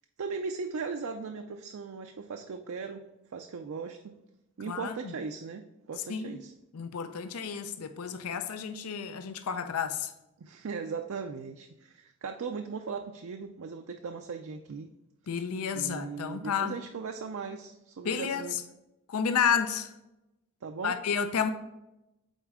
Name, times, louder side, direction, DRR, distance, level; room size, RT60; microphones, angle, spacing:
voice 1, 0.2-4.2 4.6-6.5 10.4-14.9 15.7-18.6 20.6-21.0, right 5 dB, 65° right, 0.4 m, -38 dB
voice 2, 6.7-10.1 15.3-16.8 18.0-18.6 19.1-19.9 20.8-21.5, left 7 dB, 80° left, 0.5 m, -31 dB
8.1 x 4.1 x 3.6 m
head